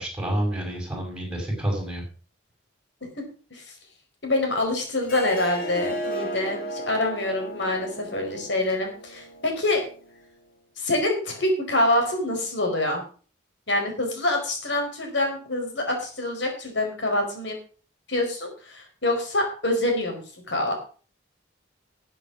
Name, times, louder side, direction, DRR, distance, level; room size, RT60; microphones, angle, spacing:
voice 1, 0.0-2.0, right 1 dB, 5° right, 1 dB, 6.3 m, -28 dB
voice 2, 4.2-9.8 10.8-13.0 13.7-17.6 18.1-20.2 20.5-20.7, left 1 dB, 70° left, 2 dB, 4.8 m, -26 dB
Harp, 5.0-10.2, right 1 dB, 50° left, 2.5 m, -34 dB
13.5 x 7.8 x 6.2 m, 0.40 s
head